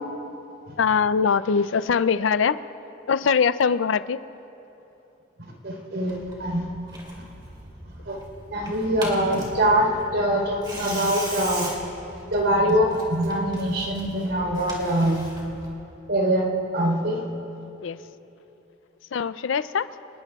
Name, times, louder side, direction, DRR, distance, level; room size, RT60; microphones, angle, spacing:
voice 1, 0.8-2.6 3.1-4.2 17.8-18.0 19.1-19.9, left 6 dB, 75° left, 15 dB, 0.4 m, -22 dB
voice 2, 5.6-6.6 8.1-8.2 8.5-11.7 12.3-15.3 16.1-16.5 16.7-17.2, right 1 dB, 65° right, 0 dB, 3.9 m, -23 dB
Tearing, 6.1-15.7, right 1 dB, 25° right, 2.7 m, -39 dB
27.0 x 20.0 x 2.4 m, 2.9 s
head